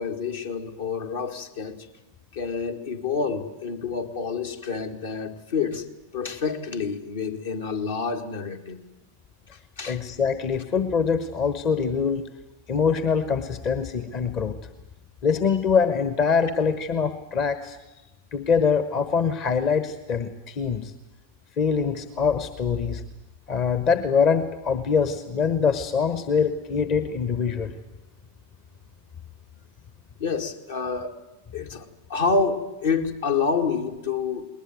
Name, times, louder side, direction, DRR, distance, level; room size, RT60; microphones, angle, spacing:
voice 1, 0.0-1.9 2.3-5.8 6.1-8.8 9.8-10.0 30.2-31.2 31.5-34.5, left 5 dB, 65° left, 5 dB, 1.9 m, -28 dB
voice 2, 9.9-12.3 12.7-14.6 15.2-17.8 18.3-20.9 21.6-23.0 23.5-27.7, left 6 dB, 35° left, 12 dB, 1.1 m, -24 dB
20.0 x 20.0 x 9.3 m, 0.96 s
figure-of-eight pair, 90°, 0 cm